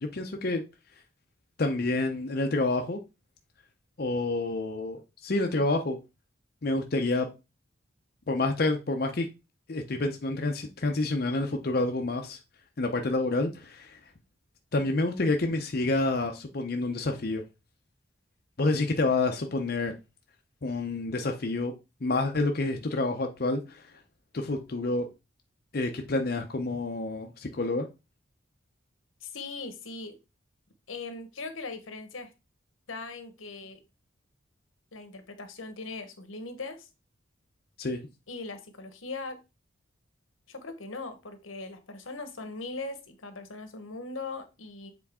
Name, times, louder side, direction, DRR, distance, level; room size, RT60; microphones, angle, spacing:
voice 1, 0.0-0.6 1.6-3.0 4.0-6.0 6.6-7.3 8.3-9.3 9.7-12.4 12.8-14.0 14.7-17.4 18.6-19.9 20.6-21.7 22.0-23.8 24.3-25.1 25.7-27.9 37.8-38.0, left 2 dB, 50° left, 0.6 m, -28 dB
voice 2, 29.2-30.2 30.9-32.3 32.9-33.8 34.9-36.9 38.3-39.4 40.5-44.9, left 3 dB, 90° left, 1.1 m, -40 dB
7.1 x 3.8 x 3.6 m
head